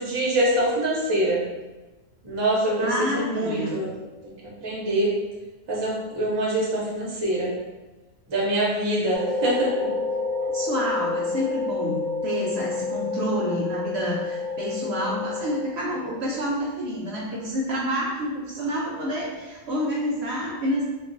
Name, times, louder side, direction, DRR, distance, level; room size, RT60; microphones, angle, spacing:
voice 1, 0.0-1.4 2.2-3.9 4.2-4.3 4.6-5.1 5.7-7.5 8.3-9.7, right 1 dB, 30° right, -5 dB, 0.5 m, -24 dB
voice 2, 2.7-3.8 10.5-20.9, equal, 65° right, -4 dB, 0.8 m, -28 dB
sound 1, 9.1-15.7, left 3 dB, 55° left, 0.5 m, -29 dB
2.3 x 2.2 x 3.7 m, 1.1 s
omnidirectional pair, 1.4 m